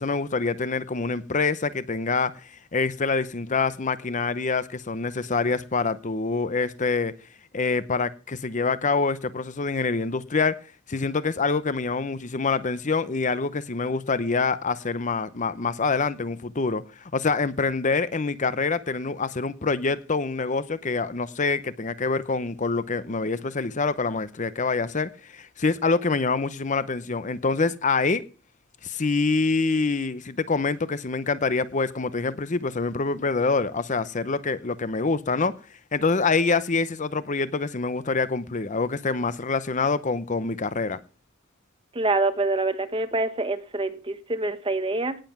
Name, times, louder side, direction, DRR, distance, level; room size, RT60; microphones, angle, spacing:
voice 1, 0.0-7.1 7.5-10.6 10.9-28.2 28.8-35.5 35.9-41.0, left 4 dB, 35° left, 0.7 m, -26 dB
voice 2, 41.9-45.2, right 2 dB, 25° right, 1.4 m, -26 dB
18.0 x 7.6 x 6.0 m
head